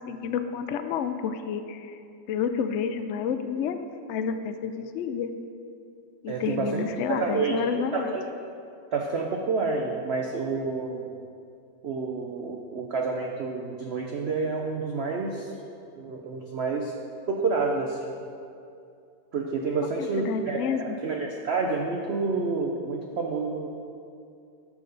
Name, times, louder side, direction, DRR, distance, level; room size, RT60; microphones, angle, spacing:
voice 1, 0.1-2.0 2.3-3.8 4.1-5.3 6.2-8.1 20.0-21.0, left 7 dB, 85° left, 8 dB, 0.6 m, -29 dB
voice 2, 6.3-8.2 8.9-11.0 11.8-15.5 15.9-16.9 17.3-18.1 19.3-23.7, right 4 dB, 70° right, 1 dB, 0.6 m, -29 dB
11.5 x 6.2 x 3.9 m, 2.5 s
omnidirectional pair, 1.9 m